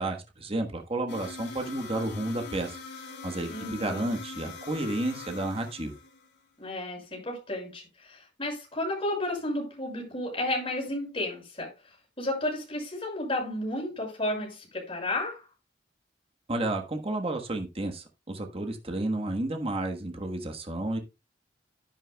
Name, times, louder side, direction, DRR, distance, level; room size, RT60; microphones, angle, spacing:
voice 1, 0.0-2.8 3.2-5.9 16.5-21.0, right 2 dB, 35° right, 1.4 m, -31 dB
sound 1, 1.1-6.4, left 5 dB, 80° left, 3.3 m, -42 dB
voice 2, 3.5-4.1 6.6-11.7 12.2-15.4, left 1 dB, 30° left, 5.9 m, -32 dB
11.0 x 10.5 x 2.3 m
head